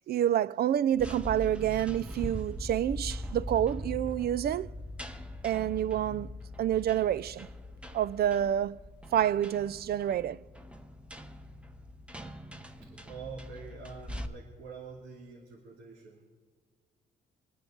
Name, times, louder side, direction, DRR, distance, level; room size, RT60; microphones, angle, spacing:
voice 1, 0.1-4.7 5.4-6.3 6.6-7.5 7.9-8.8 9.1-10.4, right 11 dB, 50° right, 0.4 m, -28 dB
sound 1, 0.9-14.3, equal, 5° right, 0.8 m, -41 dB
voice 2, 5.9-6.2 12.8-16.2, right 5 dB, 90° right, 2.7 m, -46 dB
24.5 x 9.6 x 3.8 m
cardioid pair, 90°, 20 cm